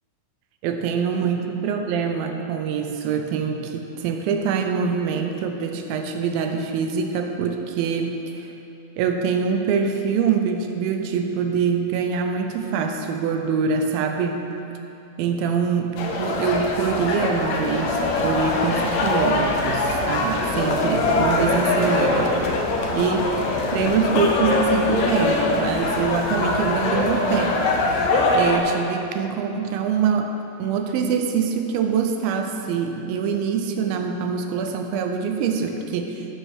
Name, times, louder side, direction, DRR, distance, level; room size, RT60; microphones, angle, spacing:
voice 1, 0.6-8.5 9.0-14.6 15.2-22.3 22.9-27.7 28.3-30.3 30.6-36.3, right 6 dB, 80° right, 4 dB, 2.4 m, -24 dB
sound 1, 16.0-28.6, left 2 dB, 85° left, 1.6 m, -22 dB
13.0 x 4.7 x 6.3 m, 2.8 s
omnidirectional pair, 4.4 m